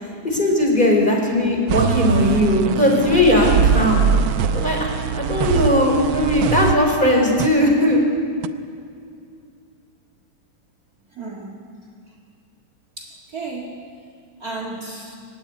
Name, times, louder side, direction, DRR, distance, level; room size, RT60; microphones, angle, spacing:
voice 1, 0.2-4.0 4.5-8.0, left 1 dB, 20° left, 0 dB, 4.9 m, -18 dB
sound 1, 1.7-7.5 7.9-8.0 8.4-8.5, right 7 dB, 75° right, 1.5 m, -22 dB
voice 2, 11.1-11.5 13.0-13.8 14.4-15.2, right 3 dB, 40° right, 1 dB, 2.5 m, -33 dB
24.0 x 16.5 x 9.8 m, 2.3 s
omnidirectional pair, 2.4 m